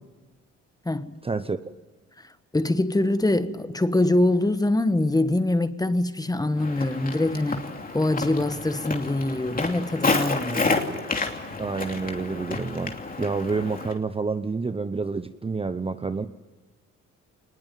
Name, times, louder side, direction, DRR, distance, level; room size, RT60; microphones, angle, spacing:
voice 1, 1.2-1.6 11.6-16.3, right 4 dB, 20° right, 0.8 m, -28 dB
voice 2, 2.2-7.7 7.9-10.7, left 2 dB, 10° left, 1.3 m, -24 dB
Walk footsteps, 6.6-13.9, left 3 dB, 30° left, 2.9 m, -30 dB
22.5 x 20.0 x 9.3 m
cardioid pair, 90°, 30 cm